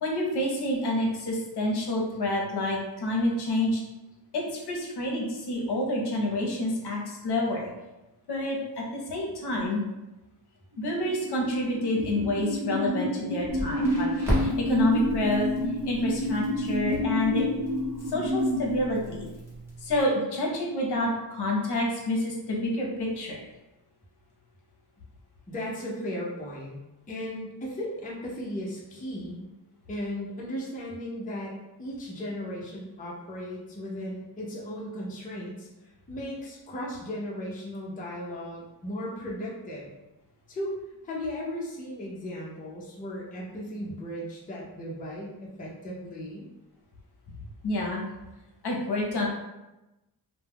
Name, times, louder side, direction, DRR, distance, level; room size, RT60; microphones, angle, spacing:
voice 1, 0.0-3.8 4.3-7.7 8.3-8.6 8.9-9.8 10.8-15.5 15.8-17.4 18.1-19.3 19.8-23.4 47.6-48.0 48.6-49.3, left 1 dB, 65° left, -1 dB, 0.7 m, -28 dB
sound 1, 10.7-18.9, left 1 dB, 50° right, 0.8 m, -29 dB
Crackle, 13.5-20.0, equal, 5° right, 0.9 m, -36 dB
voice 2, 25.5-26.8 27.1-29.4 29.9-31.5 31.8-39.9 40.5-40.8 41.0-46.5, equal, 20° left, -4 dB, 0.5 m, -36 dB
2.2 x 2.1 x 3.4 m, 1.0 s
wide cardioid pair, 140°, 44 cm